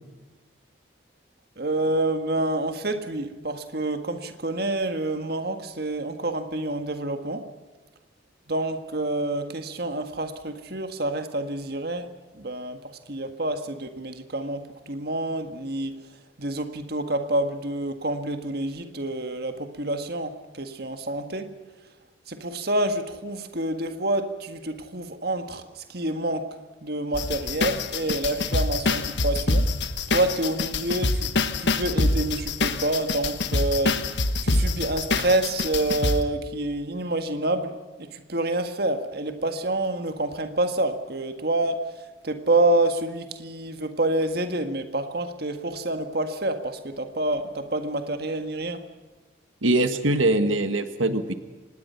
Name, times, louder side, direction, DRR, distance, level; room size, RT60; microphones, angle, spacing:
voice 1, 1.6-7.5 8.5-16.0 16.4-21.5 22.3-26.6 26.8-29.7 30.1-31.3 31.6-34.1 34.4-48.9, right 2 dB, 55° right, 1.8 m, -28 dB
sound 1, 27.1-36.2, left 3 dB, 65° left, 1.5 m, -25 dB
voice 2, 49.6-51.3, right 2 dB, 90° right, 1.6 m, -22 dB
25.0 x 20.0 x 5.7 m
head